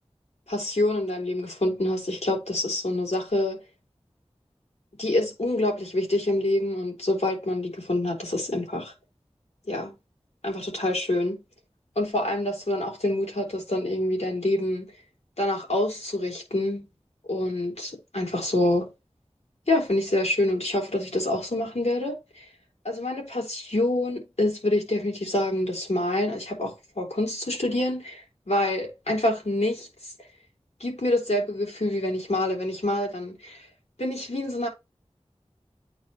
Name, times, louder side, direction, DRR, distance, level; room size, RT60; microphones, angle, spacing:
voice 1, 0.5-3.6 5.0-8.9 9.7-10.0 10.4-11.4 12.0-14.9 15.4-16.9 17.3-18.9 19.7-22.5 22.8-29.9 30.8-33.7 34.0-34.7, left 1 dB, 90° left, 3.5 m, -26 dB
8.8 x 3.5 x 3.0 m
wide cardioid pair, 40°, 11 cm